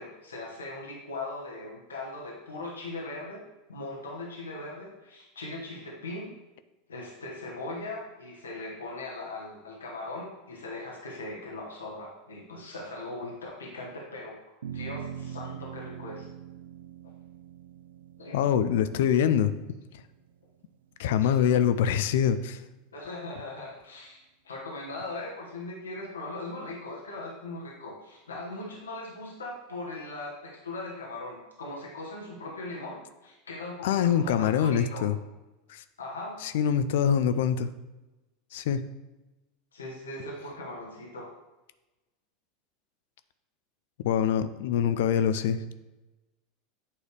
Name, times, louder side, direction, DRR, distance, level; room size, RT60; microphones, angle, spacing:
voice 1, 0.0-3.4 3.7-6.3 6.9-14.4 14.7-16.3 18.2-18.4 21.2-21.4 22.9-35.1 36.0-36.4 39.7-41.3, left 2 dB, 85° left, -2 dB, 1.1 m, -39 dB
sound 1, 14.6-21.2, right 9 dB, 75° right, 0.4 m, -43 dB
voice 2, 18.3-19.5 21.0-22.6 33.8-35.2 35.7-35.8 36.4-37.7 38.5-38.8 44.0-45.6, left 8 dB, 65° left, 12 dB, 0.4 m, -24 dB
8.6 x 3.2 x 4.8 m, 1.1 s
hypercardioid pair, 85°, 0 cm